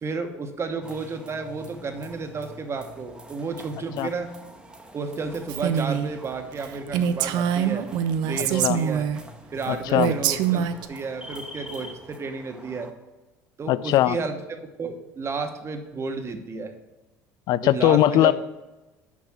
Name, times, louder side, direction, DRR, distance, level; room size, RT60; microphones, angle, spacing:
voice 1, 0.0-4.3 4.9-7.8 8.3-9.1 9.5-12.9 13.6-14.4 14.8-16.7 17.6-18.3, right 4 dB, 35° right, 6 dB, 1.1 m, -32 dB
sound 1, 0.8-12.9, equal, 10° right, 1.0 m, -45 dB
Female speech woman speaking, 5.5-6.1 6.5-6.6 6.9-9.2 9.9-10.9, right 9 dB, 65° right, 0.5 m, -24 dB
voice 2, 8.3-8.8 9.7-10.1 13.7-14.2 17.5-18.3, left 14 dB, 60° left, 16 dB, 0.4 m, -20 dB
6.1 x 5.5 x 5.9 m, 1.1 s
hypercardioid pair, 75°, 8 cm